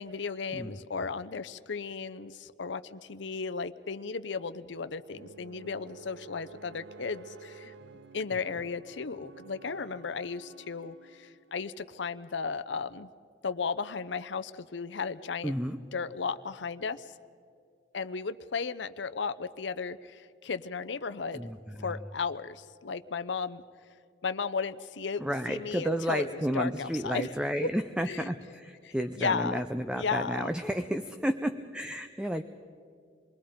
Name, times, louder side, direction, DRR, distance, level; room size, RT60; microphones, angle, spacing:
voice 1, 0.0-7.7 8.1-13.1 13.4-15.6 15.9-17.1 17.9-21.5 21.8-23.6 24.2-25.2 25.5-27.3 28.1-28.3 28.8-29.6 30.0-30.5, left 5 dB, 75° left, 12 dB, 0.6 m, -35 dB
sound 1, 5.1-11.5, right 4 dB, 80° right, 0.7 m, -51 dB
voice 2, 15.4-15.8 21.3-22.0 25.2-32.4, equal, 5° right, 8 dB, 0.5 m, -32 dB
27.5 x 21.5 x 5.1 m, 2.3 s
head